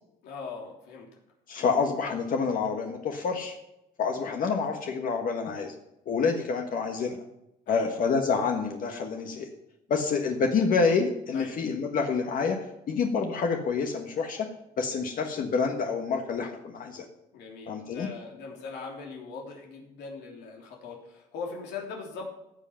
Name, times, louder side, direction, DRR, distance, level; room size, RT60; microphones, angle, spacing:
voice 1, 0.2-1.1 1.6-1.7 7.7-7.9 11.3-11.6 17.3-22.2, left 4 dB, 85° left, -1 dB, 3.1 m, -40 dB
voice 2, 1.5-3.5 4.0-5.7 6.1-7.2 7.7-9.5 9.9-12.6 12.9-14.5 14.8-17.0 17.7-18.1, left 5 dB, 55° left, 3 dB, 1.5 m, -27 dB
14.5 x 7.7 x 5.8 m, 0.86 s
cardioid pair, 110°, 17 cm